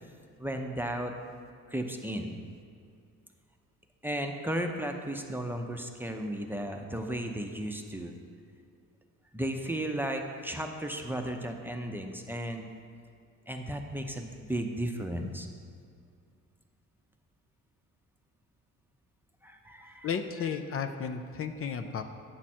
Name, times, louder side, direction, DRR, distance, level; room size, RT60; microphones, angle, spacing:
voice 1, 0.4-1.1 1.7-2.3 4.0-8.2 9.3-12.7 13.5-15.5 19.4-20.1, right 1 dB, 5° right, 3 dB, 0.7 m, -34 dB
voice 2, 20.0-22.0, left 6 dB, 50° left, 7 dB, 0.5 m, -33 dB
9.0 x 6.0 x 4.3 m, 2.3 s
cardioid pair, 90°, 30 cm